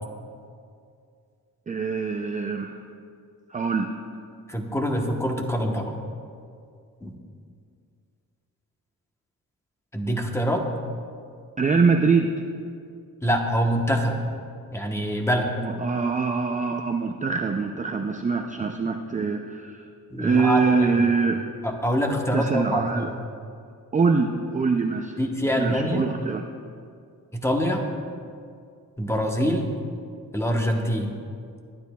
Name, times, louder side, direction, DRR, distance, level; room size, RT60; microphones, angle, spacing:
voice 1, 1.7-2.8 3.5-3.9 11.6-12.3 15.6-19.8 20.2-21.4 22.3-23.1 23.9-25.1 25.6-26.4, right 4 dB, 25° right, 4 dB, 0.4 m, -24 dB
voice 2, 4.5-6.0 7.0-7.1 9.9-10.6 13.2-14.2 14.7-15.5 20.1-21.1 21.6-23.2 25.2-26.1 27.3-27.8 29.0-29.7 30.3-31.2, equal, 10° left, 2 dB, 0.9 m, -25 dB
22.0 x 10.5 x 2.3 m, 2.3 s
wide cardioid pair, 150°, 34 cm